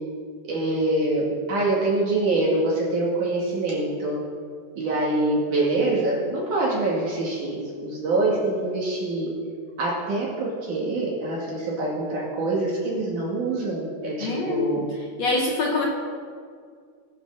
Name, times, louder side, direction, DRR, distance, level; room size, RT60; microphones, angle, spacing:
voice 1, 0.4-4.2 4.7-9.3 9.8-14.9, right 2 dB, 55° right, -4 dB, 3.2 m, -25 dB
voice 2, 14.2-14.8 15.2-15.8, left 3 dB, 60° left, -2 dB, 1.8 m, -24 dB
19.0 x 6.6 x 6.4 m, 2.1 s
omnidirectional pair, 4.9 m